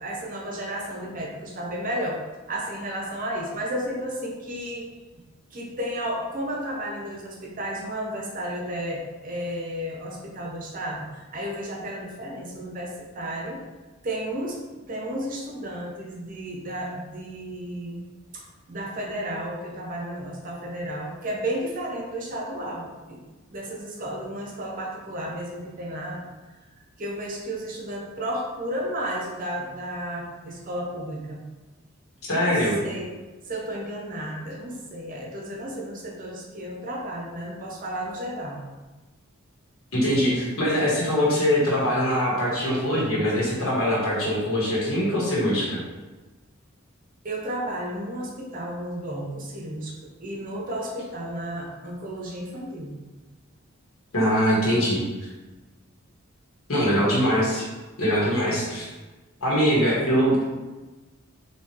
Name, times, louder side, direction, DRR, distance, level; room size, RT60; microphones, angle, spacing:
voice 1, 0.0-2.2 2.5-5.2 5.5-13.6 14.0-14.6 14.9-18.0 18.3-23.2 23.5-26.2 27.0-31.4 32.4-33.1 33.4-38.6 47.2-52.9 54.7-54.8 56.7-57.2 58.5-58.7, right 1 dB, 40° right, -1 dB, 0.6 m, -33 dB
voice 2, 32.3-32.8 39.9-45.8 54.1-55.1 56.7-57.7 58.0-58.9 59.4-60.4, equal, 90° left, -5 dB, 1.3 m, -22 dB
3.5 x 2.9 x 3.0 m, 1.2 s
head